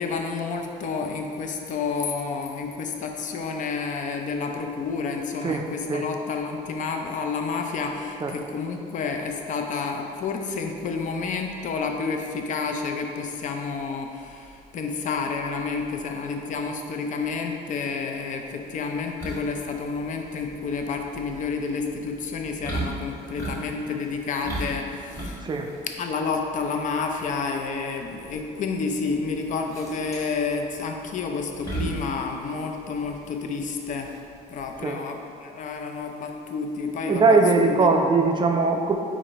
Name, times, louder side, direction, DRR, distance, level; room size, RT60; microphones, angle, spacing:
voice 1, 0.0-25.4 26.0-34.1 34.5-37.9, left 4 dB, 50° left, 4 dB, 0.5 m, -30 dB
sound 1, 19.2-34.8, right 2 dB, 15° left, 1.4 m, -37 dB
voice 2, 37.1-39.0, right 4 dB, 30° right, 3 dB, 0.4 m, -20 dB
4.8 x 2.6 x 4.1 m, 2.4 s
cardioid pair, 110°, 17 cm